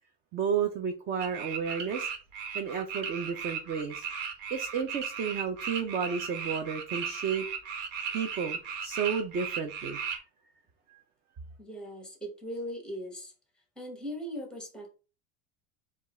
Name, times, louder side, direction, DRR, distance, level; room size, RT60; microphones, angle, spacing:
voice 1, 0.3-2.1 2.5-4.1 4.5-7.5 8.1-10.0 10.9-11.0, right 6 dB, 25° right, 6 dB, 0.4 m, -32 dB
sound 1, 1.2-10.2, right 7 dB, 80° right, 1.3 m, -36 dB
voice 2, 11.6-13.3 13.8-14.9, equal, ahead, 4 dB, 0.8 m, -39 dB
4.6 x 2.4 x 4.1 m, 0.34 s
supercardioid pair, 150°, 37 cm